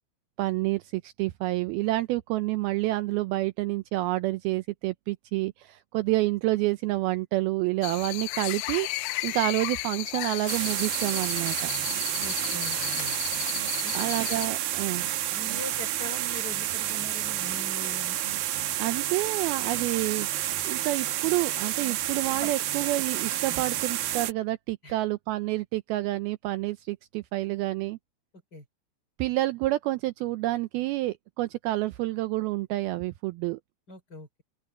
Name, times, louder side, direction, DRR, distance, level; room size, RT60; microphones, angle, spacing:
voice 1, 0.4-11.7 13.9-15.0 18.8-20.3 20.6-28.0 29.2-33.6, right 18 dB, 90° right, 2.1 m, -28 dB
sound 1, 7.8-14.5, left 19 dB, 80° left, 2.7 m, -34 dB
sound 2, 10.5-24.3, right 13 dB, 70° right, 2.5 m, -30 dB
voice 2, 12.2-13.1 13.8-13.9 14.4-14.6 15.0-18.2 22.3-22.5 23.5-23.6 24.8-25.0 28.5-28.6 33.9-34.4, equal, 25° left, 4.0 m, -42 dB
open air
omnidirectional pair, 5.1 m